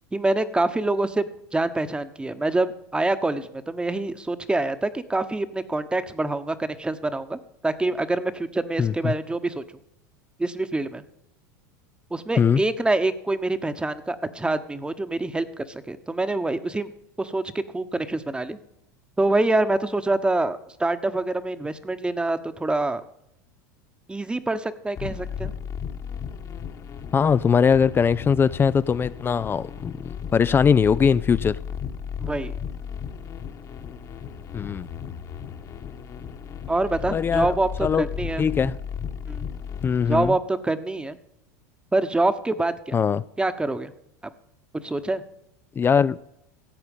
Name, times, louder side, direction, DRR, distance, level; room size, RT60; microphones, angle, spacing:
voice 1, 0.1-9.6 10.4-11.0 12.1-16.9 17.2-17.4 17.7-18.6 19.2-23.0 24.1-25.5 32.2-32.6 36.7-38.5 39.3-39.5 40.1-41.2 41.9-43.0 43.4-43.9 44.2-44.3 44.8-45.2, right 2 dB, 10° right, 1.1 m, -26 dB
voice 2, 8.8-9.1 12.4-12.6 27.1-31.6 34.5-34.9 37.1-37.5 37.8-38.0 38.4-38.7 39.8-40.3 42.9-43.2 45.8-46.2, left 6 dB, 25° left, 0.4 m, -21 dB
sound 1, 25.0-40.3, left 7 dB, 40° left, 1.4 m, -35 dB
16.5 x 8.0 x 5.4 m
hypercardioid pair, 90°, 10 cm